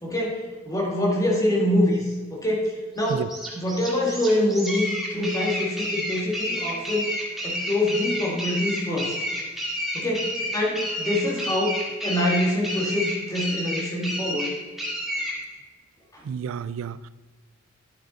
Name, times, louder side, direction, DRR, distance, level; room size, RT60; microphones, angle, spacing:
voice 1, 0.0-7.1 7.4-9.1 9.9-14.6 16.1-16.2, left 1 dB, 15° left, -2 dB, 2.1 m, -25 dB
sound 1, 3.0-15.4, equal, ahead, 2.0 m, -30 dB
voice 2, 16.2-17.1, right 7 dB, 75° right, 16 dB, 0.3 m, -31 dB
11.5 x 8.3 x 3.9 m, 1.3 s
head